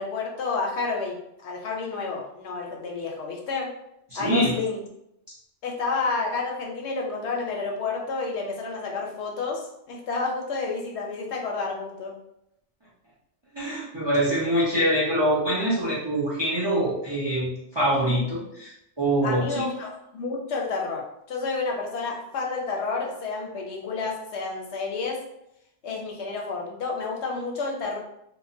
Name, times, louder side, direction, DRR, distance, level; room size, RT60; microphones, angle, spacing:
voice 1, 0.0-3.7 4.1-4.8 5.6-12.1 19.2-25.2 25.8-28.0, left 4 dB, 70° left, 0 dB, 0.8 m, -30 dB
voice 2, 4.1-4.5 13.5-19.7, right 1 dB, 30° right, -7 dB, 0.5 m, -24 dB
2.9 x 2.1 x 2.5 m, 0.81 s
omnidirectional pair, 1.3 m